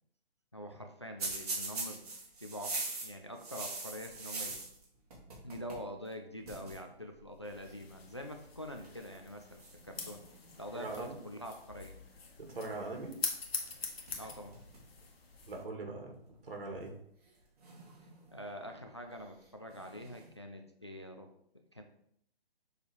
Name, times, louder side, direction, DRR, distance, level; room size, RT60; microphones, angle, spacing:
voice 1, 0.5-4.6 5.4-10.2 10.6-12.0 14.2-14.6 18.0-21.8, equal, 30° left, 4 dB, 0.3 m, -45 dB
sound 1, 1.2-4.8 5.1-5.9 6.1-6.2 6.4-6.8 7.6-7.9 8.7-9.0 9.6-10.6 13.6-13.7 14.1-14.9 15.3-15.4 16.3-16.4 17.6-18.5 19.7-20.3, right 3 dB, 40° right, 2.2 m, -42 dB
sound 2, 7.4-15.6, left 4 dB, 75° left, 1.5 m, -44 dB
voice 2, 10.7-11.2 12.5-13.1 15.5-16.2 16.4-16.9, right 3 dB, 65° right, 2 dB, 2.0 m, -41 dB
6.9 x 3.3 x 4.5 m, 0.71 s
hypercardioid pair, 170°, 30 cm